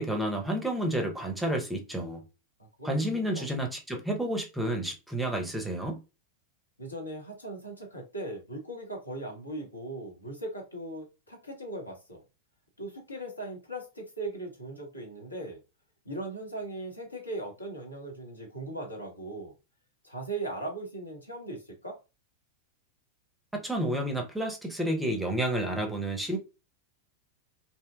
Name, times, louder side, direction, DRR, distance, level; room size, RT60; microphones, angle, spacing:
voice 1, 0.0-2.2 2.8-6.0 23.6-26.4, right 1 dB, 5° right, 0.6 m, -30 dB
voice 2, 6.8-12.2 12.8-15.6 16.0-19.5 20.0-22.0, right 2 dB, 85° left, 0.8 m, -39 dB
2.7 x 2.1 x 2.3 m
figure-of-eight pair, 90°, 0 cm